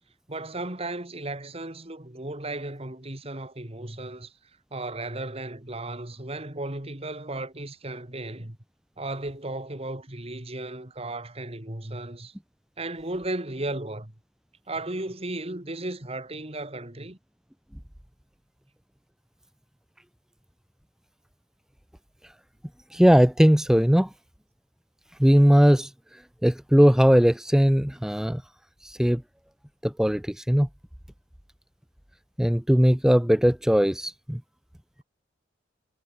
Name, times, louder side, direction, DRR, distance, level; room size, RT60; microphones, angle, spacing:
voice 1, 0.3-4.3 4.7-8.6 9.0-12.3 12.8-14.1 14.7-17.2, right 2 dB, 30° right, 2.4 m, -35 dB
voice 2, 22.9-24.1 25.2-28.4 28.8-29.2 29.8-30.7 32.4-34.4, equal, 5° right, 0.5 m, -19 dB
head